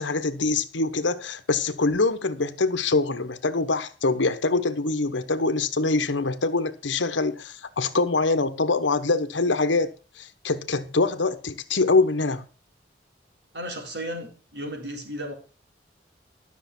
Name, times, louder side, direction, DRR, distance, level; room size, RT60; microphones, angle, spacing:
voice 1, 0.0-12.5, left 3 dB, 85° left, 1.1 m, -24 dB
voice 2, 13.5-15.3, equal, 70° right, 4.3 m, -34 dB
12.5 x 6.4 x 6.1 m
head